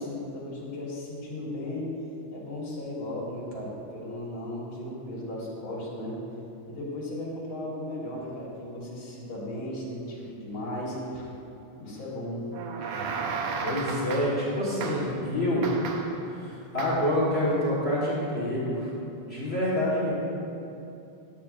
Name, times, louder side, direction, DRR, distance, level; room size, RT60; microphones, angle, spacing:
voice 1, 0.0-1.9 2.3-6.2 6.7-11.3 11.7-12.5 12.8-12.9, left 1 dB, 50° left, -5 dB, 2.0 m, -36 dB
sound 1, 12.5-14.5 14.8-15.2 15.6-16.2 16.8-17.2, right 4 dB, 85° right, 1.4 m, -34 dB
voice 2, 13.6-15.7 16.3-18.9 19.2-20.1, left 1 dB, 90° left, -8 dB, 0.5 m, -27 dB
12.0 x 8.7 x 2.5 m, 2.8 s
omnidirectional pair, 3.6 m